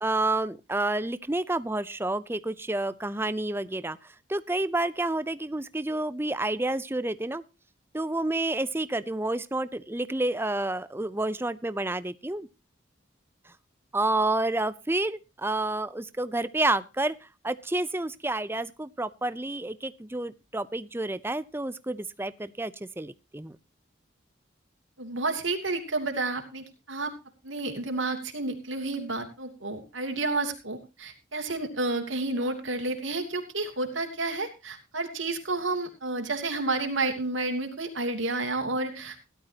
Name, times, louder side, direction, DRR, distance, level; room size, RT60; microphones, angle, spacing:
voice 1, 0.0-7.4 7.9-12.5 13.9-17.1 17.4-23.6, right 2 dB, 10° right, 15 dB, 0.6 m, -29 dB
voice 2, 25.0-27.1 27.4-39.2, right 2 dB, 80° right, 4 dB, 2.9 m, -30 dB
17.0 x 12.0 x 2.9 m, 0.28 s
head